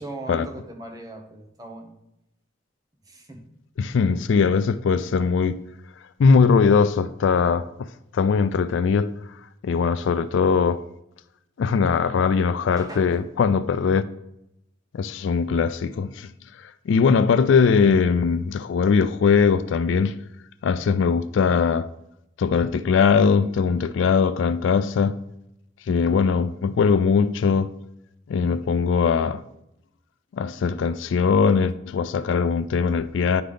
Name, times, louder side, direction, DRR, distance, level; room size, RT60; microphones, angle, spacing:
voice 1, 0.0-2.0 3.0-3.5 12.8-13.2, right 2 dB, 20° right, 0.9 m, -39 dB
voice 2, 3.8-5.6 6.2-7.7 8.1-9.1 9.6-10.8 11.6-14.0 14.9-16.3 16.6-20.2 20.6-21.9 22.4-25.2 25.9-27.7 28.3-29.4 30.3-33.4, left 5 dB, 65° left, 0.3 m, -20 dB
9.8 x 3.4 x 3.8 m
head